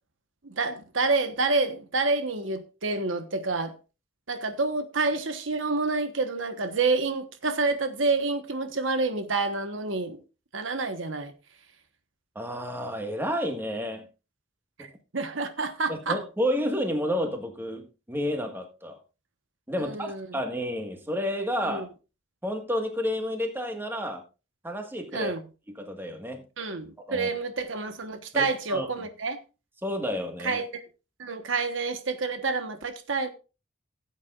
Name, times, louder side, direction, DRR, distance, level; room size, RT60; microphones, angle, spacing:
voice 1, 0.4-3.7 4.3-10.2 10.5-11.3 14.8-14.9 15.1-16.2 19.8-20.3 21.6-21.8 25.1-25.4 26.6-29.4 30.4-30.8 31.2-33.3, right 3 dB, 80° right, 1.2 m, -28 dB
voice 2, 12.3-14.1 14.8-14.9 15.9-19.0 19.7-21.9 22.4-24.2 24.6-25.3 25.8-26.4 27.1-27.3 28.3-28.9 29.8-30.6, equal, 10° right, 1.6 m, -30 dB
16.5 x 8.3 x 2.5 m
head